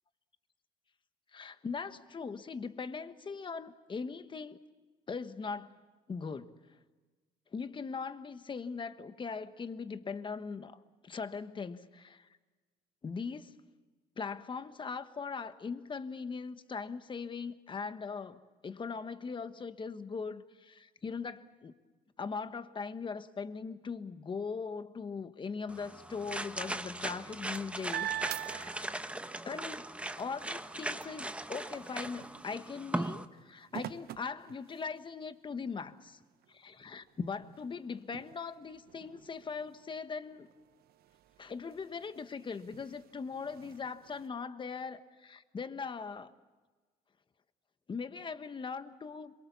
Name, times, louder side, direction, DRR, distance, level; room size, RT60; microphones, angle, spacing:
voice 1, 1.3-4.6 5.1-5.8 6.1-6.5 7.5-10.8 11.0-12.3 13.0-13.5 14.2-21.8 22.2-28.7 29.4-29.8 30.2-36.2 36.5-40.5 41.4-46.3 47.9-49.3, left 5 dB, 30° left, 11 dB, 1.3 m, -40 dB
sound 1, 25.7-33.2, right 1 dB, 5° right, 0.9 m, -39 dB
sound 2, 27.0-29.4 29.8-35.2 35.9-36.0 36.3-44.3, right 12 dB, 65° right, 0.8 m, -46 dB
26.5 x 23.5 x 7.1 m, 1.3 s
cardioid pair, 110°, 17 cm